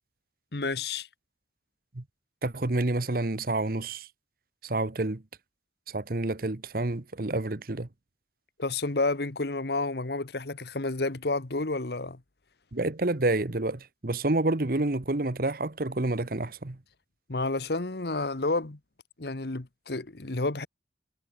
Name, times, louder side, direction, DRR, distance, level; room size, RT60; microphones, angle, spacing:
voice 1, 0.5-1.1 8.6-12.2 17.3-18.8 19.2-20.7, left 3 dB, 65° left, 1.3 m, -30 dB
voice 2, 2.4-4.1 4.6-5.2 5.9-7.9 12.7-16.8, right 2 dB, 50° right, 1.1 m, -28 dB
head